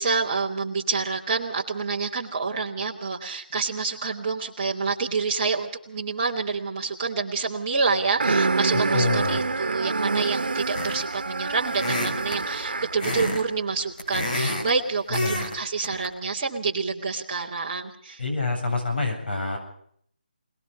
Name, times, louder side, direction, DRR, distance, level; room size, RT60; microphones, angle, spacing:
voice 1, 0.0-18.2, right 4 dB, 20° right, -4 dB, 2.5 m, -28 dB
sound 1, 8.2-13.1, right 3 dB, 70° right, 1.5 m, -26 dB
voice 2, 8.7-9.4 15.1-15.4 18.2-19.6, left 3 dB, 80° left, 4 dB, 7.9 m, -26 dB
sound 2, 10.7-11.2 11.7-12.4 13.0-13.4 13.7-14.7 15.1-15.5 15.8-16.1, left 1 dB, 55° left, 5.6 m, -28 dB
27.0 x 20.0 x 5.1 m, 0.66 s
figure-of-eight pair, 175°, 5 cm